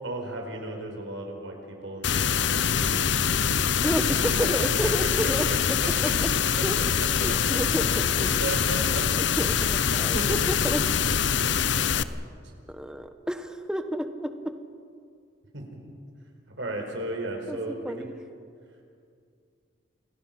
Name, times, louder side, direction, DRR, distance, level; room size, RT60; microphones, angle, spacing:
voice 1, 0.0-3.2 3.5-3.9 4.6-5.1 5.4-5.9 8.3-9.1 10.1-10.4 11.4-12.2 12.4-12.5 15.5-15.6 16.6-18.1, right 2 dB, 75° right, 2 dB, 4.8 m, -35 dB
sound 1, 2.0-12.0, left 7 dB, 65° left, 0.7 m, -24 dB
voice 2, 3.8-5.8 6.0-6.3 6.6-6.8 7.1-7.9 8.2-8.4 9.2-10.8 12.7-14.3 17.5-17.6 17.8-18.1, equal, 5° right, 7 dB, 1.2 m, -30 dB
28.5 x 21.0 x 5.9 m, 2.3 s
head